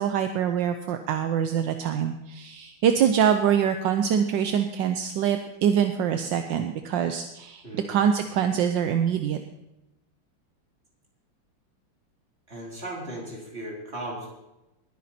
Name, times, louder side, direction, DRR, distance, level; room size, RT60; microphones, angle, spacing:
voice 1, 0.0-7.6 7.9-9.4, right 8 dB, 75° right, 7 dB, 1.4 m, -24 dB
voice 2, 12.5-14.3, right 1 dB, 30° right, -2 dB, 3.8 m, -36 dB
20.0 x 9.4 x 4.3 m, 0.94 s
omnidirectional pair, 2.1 m